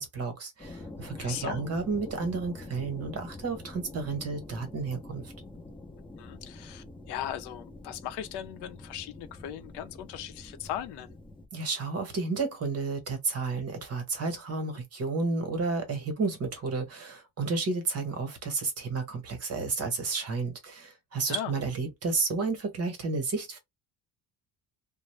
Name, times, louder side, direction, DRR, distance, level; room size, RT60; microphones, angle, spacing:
voice 1, 0.0-5.2 11.5-23.6, right 4 dB, 35° right, 1.1 m, -31 dB
sound 1, 0.6-11.5, left 2 dB, 10° left, 0.7 m, -46 dB
voice 2, 1.2-1.7 6.2-11.1 21.3-21.6, left 11 dB, 75° left, 0.6 m, -38 dB
2.3 x 2.0 x 3.2 m
cardioid pair, 125°, 41 cm